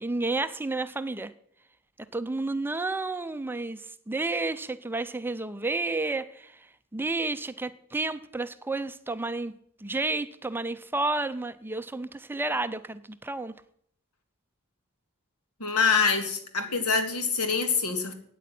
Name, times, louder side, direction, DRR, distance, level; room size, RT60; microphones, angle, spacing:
voice 1, 0.0-1.3 2.1-3.8 4.1-6.5 6.9-9.5 9.8-13.5, right 2 dB, 10° right, 12 dB, 0.5 m, -31 dB
voice 2, 15.6-18.1, left 5 dB, 90° left, 7 dB, 2.2 m, -25 dB
16.5 x 9.3 x 6.0 m, 0.67 s
head